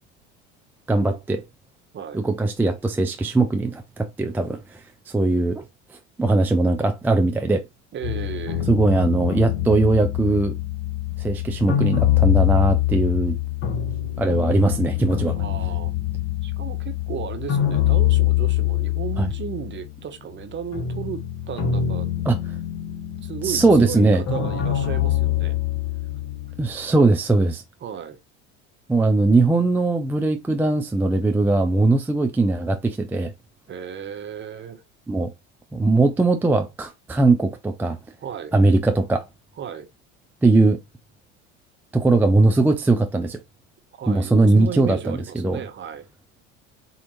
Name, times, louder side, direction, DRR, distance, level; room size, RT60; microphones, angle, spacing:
voice 1, 0.9-1.4 2.1-4.8 5.1-5.6 5.9-7.6 8.7-10.5 11.2-13.4 14.2-15.4 19.2-19.3 22.3-22.4 23.4-24.2 26.6-27.6 28.9-33.3 35.1-35.3 35.7-38.0 38.5-39.2 40.4-40.8 41.9-43.4 44.1-45.6, right 2 dB, 5° right, 0.4 m, -20 dB
voice 2, 7.9-8.7 15.3-15.9 16.4-22.2 23.2-25.6 27.8-28.2 33.7-34.8 38.2-38.5 39.6-39.9 44.0-46.0, right 8 dB, 30° right, 0.8 m, -34 dB
sound 1, 8.0-20.0 20.4-26.8, left 12 dB, 45° left, 1.6 m, -24 dB
4.5 x 2.8 x 2.6 m
hypercardioid pair, 85°, 36 cm